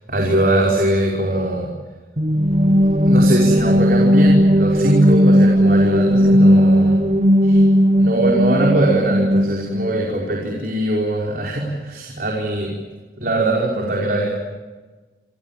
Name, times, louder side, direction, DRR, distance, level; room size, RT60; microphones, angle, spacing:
voice 1, 0.1-1.7 3.1-7.0 7.4-7.6 8.0-12.7 13.2-14.3, right 1 dB, 50° right, -1 dB, 5.3 m, -21 dB
sound 1, 2.2-9.9, equal, 35° right, 1.4 m, -15 dB
28.0 x 27.5 x 7.6 m, 1.3 s
head